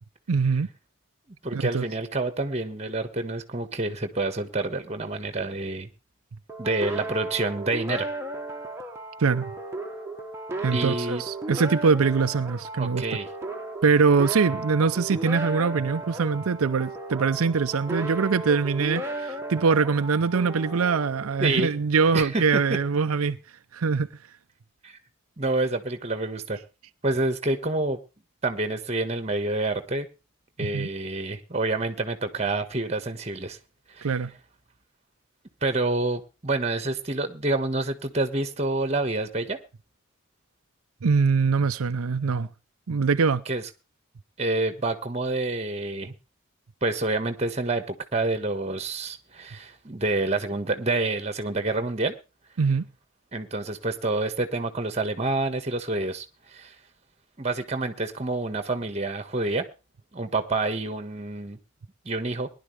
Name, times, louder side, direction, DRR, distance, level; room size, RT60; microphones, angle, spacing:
voice 1, 0.3-0.7 1.5-1.9 9.2-9.5 10.6-13.0 13.8-23.4 23.7-24.1 30.6-30.9 34.0-34.3 41.0-42.5 42.9-43.4 52.6-52.9, right 5 dB, 85° right, 0.6 m, -23 dB
voice 2, 1.4-5.9 6.6-8.1 10.7-11.2 12.8-13.3 21.4-21.7 22.1-22.6 24.8-25.0 25.4-26.6 27.0-28.0 28.4-30.1 30.6-33.6 33.9-34.1 35.6-39.6 43.5-43.6 44.4-46.1 46.8-52.1 53.3-56.7 57.4-59.6 60.1-61.6 62.0-62.5, right 2 dB, 30° right, 1.4 m, -28 dB
sound 1, 6.5-21.9, right 2 dB, 10° right, 1.4 m, -35 dB
19.5 x 11.5 x 3.3 m
head